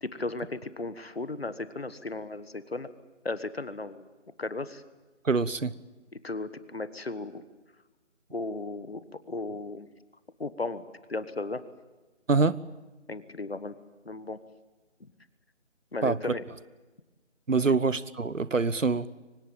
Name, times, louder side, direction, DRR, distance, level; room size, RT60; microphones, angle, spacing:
voice 1, 0.0-2.9 3.2-4.1 4.4-4.8 6.2-7.4 8.3-9.9 10.4-11.7 13.1-13.7 14.0-14.4 15.0-15.1 15.9-16.4, left 3 dB, 50° left, 14 dB, 1.4 m, -35 dB
voice 2, 5.2-5.7 12.3-12.6 16.0-16.2 17.5-19.1, right 4 dB, 85° right, 19 dB, 1.3 m, -25 dB
24.5 x 19.5 x 9.0 m, 1.2 s
figure-of-eight pair, 170°, 38 cm